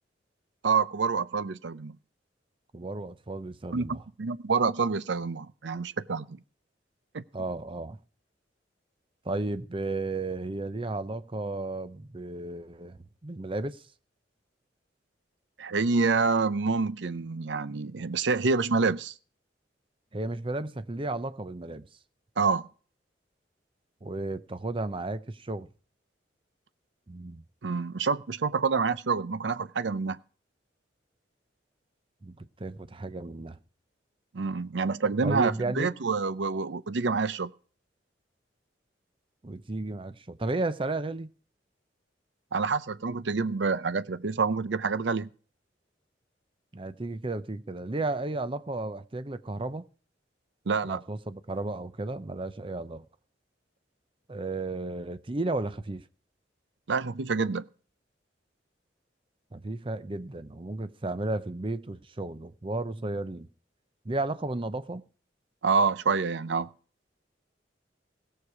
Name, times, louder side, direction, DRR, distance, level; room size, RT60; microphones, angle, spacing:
voice 1, 0.6-2.0 3.7-6.4 7.1-7.2 15.6-19.1 22.4-22.6 27.6-30.2 34.3-37.5 42.5-45.3 50.7-51.0 56.9-57.6 65.6-66.7, right 4 dB, 75° right, 0.6 m, -27 dB
voice 2, 2.7-4.0 7.3-8.0 9.2-13.8 20.1-21.9 24.0-25.7 27.1-27.4 32.2-33.6 35.2-35.9 39.4-41.3 46.7-49.9 50.8-53.0 54.3-56.0 59.5-63.5 64.0-65.0, right 2 dB, 30° right, 0.7 m, -33 dB
17.5 x 6.7 x 4.8 m
head